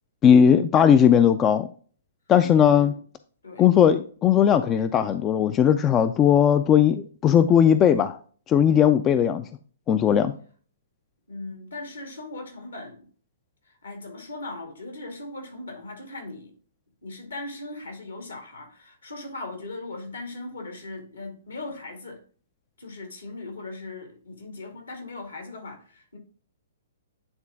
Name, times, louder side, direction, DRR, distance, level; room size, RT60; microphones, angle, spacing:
voice 1, 0.2-1.7 2.3-2.9 3.6-8.2 8.5-9.5 9.9-10.3, left 8 dB, 20° left, 0.3 m, -18 dB
voice 2, 11.3-13.1 13.7-16.5 17.0-22.2 22.8-26.2, left 2 dB, 70° left, 2.0 m, -38 dB
9.6 x 3.7 x 3.5 m
figure-of-eight pair, 115°, 0 cm